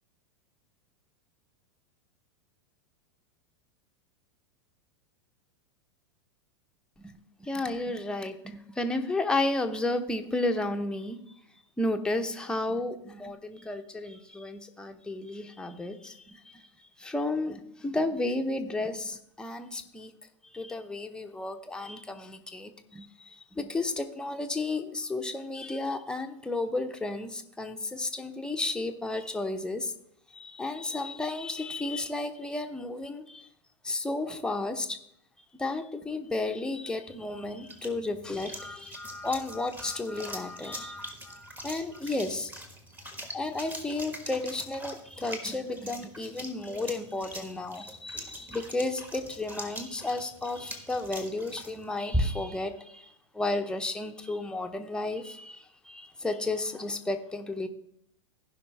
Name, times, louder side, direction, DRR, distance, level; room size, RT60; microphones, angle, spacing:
voice 1, 7.0-11.3 11.8-20.1 20.4-29.9 30.3-33.5 33.8-35.0 35.6-42.5 43.3-57.7, left 2 dB, 5° left, 5 dB, 0.8 m, -33 dB
sound 1, 37.1-52.6, equal, 10° right, 1.5 m, -40 dB
16.0 x 5.4 x 3.5 m, 0.73 s
figure-of-eight pair, 90°, 16 cm